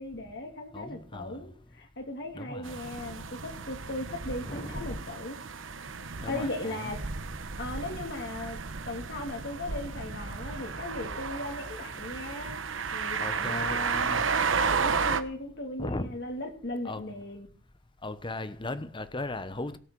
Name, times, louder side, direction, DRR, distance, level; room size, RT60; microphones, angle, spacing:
voice 1, 0.0-1.5 1.8-5.4 6.3-7.0 7.6-8.6 8.9-12.6 12.9-14.3 14.8-17.5, left 2 dB, 60° left, 3.0 m, -37 dB
voice 2, 0.7-1.4 2.3-2.8 4.4-5.0 6.2-6.9 13.2-14.2 15.8-16.1 16.8-17.0 18.0-19.8, left 2 dB, 25° left, 1.0 m, -37 dB
sound 1, 2.6-15.2, right 5 dB, 75° right, 1.1 m, -33 dB
18.0 x 6.5 x 7.9 m
head